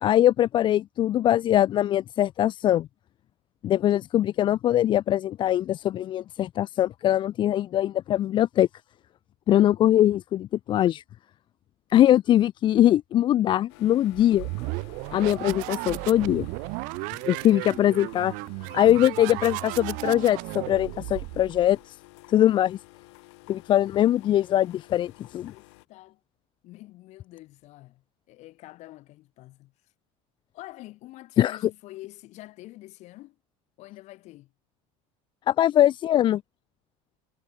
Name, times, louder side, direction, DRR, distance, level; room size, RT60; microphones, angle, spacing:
voice 1, 0.0-2.9 3.6-8.7 9.5-11.0 11.9-14.5 15.1-16.5 17.3-18.3 18.7-22.0 22.3-22.8 23.5-25.5 31.4-31.6 35.5-36.4, left 12 dB, 35° left, 0.5 m, -22 dB
sound 1, 13.7-25.9, left 27 dB, 85° left, 2.8 m, -52 dB
sound 2, 14.1-21.8, right 32 dB, 70° right, 1.7 m, -34 dB
voice 2, 16.0-16.5 25.5-26.2 26.6-29.7 30.5-33.4 33.8-34.5, left 17 dB, 55° left, 6.4 m, -46 dB
cardioid pair, 150°, 14 cm